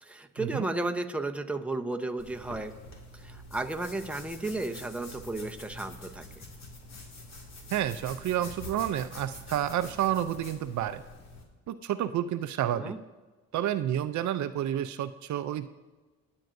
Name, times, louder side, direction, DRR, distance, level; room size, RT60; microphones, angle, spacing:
voice 1, 0.0-2.7 3.1-6.2 12.7-13.0, right 2 dB, 5° right, 5 dB, 0.8 m, -33 dB
sound 1, 2.2-11.4, left 2 dB, 60° left, 2.3 m, -46 dB
voice 2, 7.7-11.0 11.7-12.9 13.5-15.7, right 11 dB, 70° right, 11 dB, 0.5 m, -30 dB
23.5 x 8.9 x 2.6 m, 1.3 s
cardioid pair, 90°, 30 cm